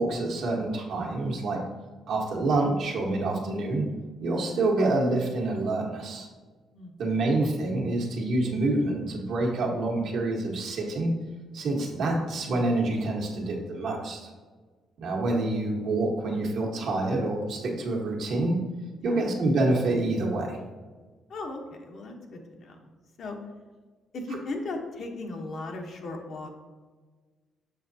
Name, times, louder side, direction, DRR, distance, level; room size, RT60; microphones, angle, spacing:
voice 1, 0.0-1.6 2.1-3.8 4.2-6.3 7.0-11.1 11.5-14.3 15.0-18.6 19.0-20.6, right 2 dB, 75° right, -1 dB, 1.3 m, -27 dB
voice 2, 6.7-7.2 19.0-19.2 21.3-22.9 23.2-23.4 24.1-26.5, left 2 dB, 65° left, 3 dB, 0.9 m, -37 dB
6.6 x 6.0 x 2.7 m, 1.4 s
cardioid pair, 90°, 0 cm